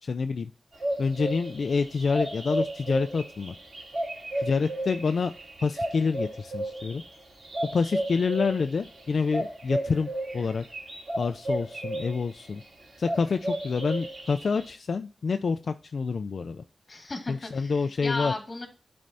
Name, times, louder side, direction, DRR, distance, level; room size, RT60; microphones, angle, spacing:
voice 1, 0.0-0.5 1.0-3.5 4.4-5.3 5.6-7.0 7.7-10.6 11.2-12.6 13.0-16.6 17.3-18.3, left 5 dB, 70° left, 8 dB, 0.3 m, -27 dB
sound 1, 0.7-12.3 12.5-14.7, right 1 dB, 65° right, 2.5 m, -34 dB
voice 2, 16.9-18.7, left 3 dB, 40° left, 4 dB, 1.8 m, -35 dB
11.0 x 4.3 x 2.6 m, 0.35 s
wide cardioid pair, 115°, 0 cm